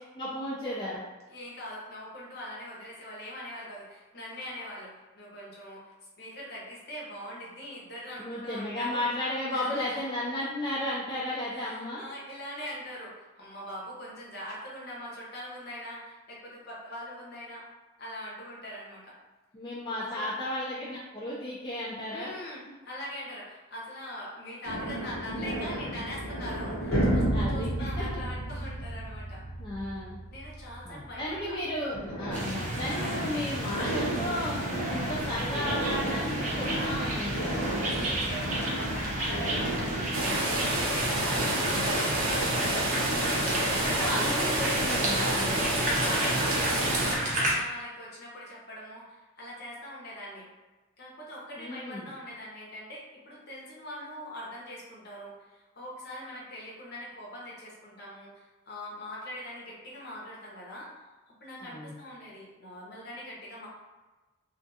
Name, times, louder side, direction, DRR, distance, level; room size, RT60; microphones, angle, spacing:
voice 1, 0.1-1.0 8.2-12.0 19.5-22.4 27.3-28.2 29.6-30.2 30.9-34.6 34.9-37.5 43.8-45.5 51.6-52.1 61.6-62.0, left 1 dB, 20° left, -8 dB, 0.3 m, -34 dB
voice 2, 1.3-9.1 9.5-10.0 11.5-17.6 18.0-19.1 19.9-20.3 22.1-29.4 30.3-31.6 32.2-32.5 36.8-37.2 37.8-44.4 45.2-50.5 51.0-63.7, left 1 dB, 50° left, -5 dB, 0.8 m, -42 dB
sound 1, 24.6-31.6 31.9-40.3, right 1 dB, 75° left, 1.0 m, -33 dB
sound 2, 32.3-47.6, right 1 dB, 35° right, 0.5 m, -32 dB
sound 3, 40.1-47.1, right 1 dB, 90° right, 0.6 m, -28 dB
2.4 x 2.4 x 2.6 m, 1.2 s
head